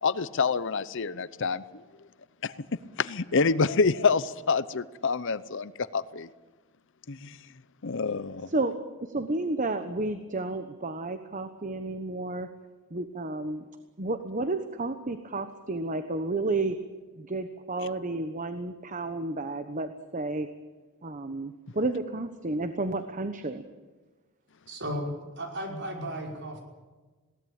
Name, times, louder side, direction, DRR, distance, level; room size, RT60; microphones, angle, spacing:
voice 1, 0.0-2.1 2.4-2.6 3.0-6.3 7.1-7.4 7.8-8.5, left 4 dB, 60° left, 16 dB, 0.8 m, -27 dB
voice 2, 9.0-12.5 12.9-13.6 14.0-16.8 17.2-20.5 21.0-23.6, right 2 dB, 35° right, 9 dB, 1.1 m, -31 dB
voice 3, 24.7-26.6, equal, 55° right, 1 dB, 5.5 m, -35 dB
21.5 x 17.5 x 8.9 m, 1.3 s
head